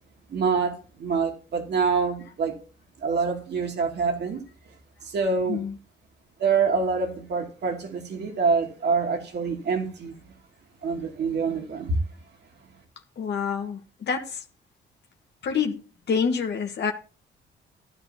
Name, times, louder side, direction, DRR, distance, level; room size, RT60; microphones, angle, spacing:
voice 1, 0.3-2.6 3.0-4.4 5.0-5.6 6.4-10.1 10.8-12.0, right 5 dB, 60° right, 2.7 m, -26 dB
voice 2, 13.2-14.4 15.4-16.9, left 6 dB, 60° left, 1.6 m, -27 dB
14.5 x 10.5 x 2.9 m
cardioid pair, 90°, 20 cm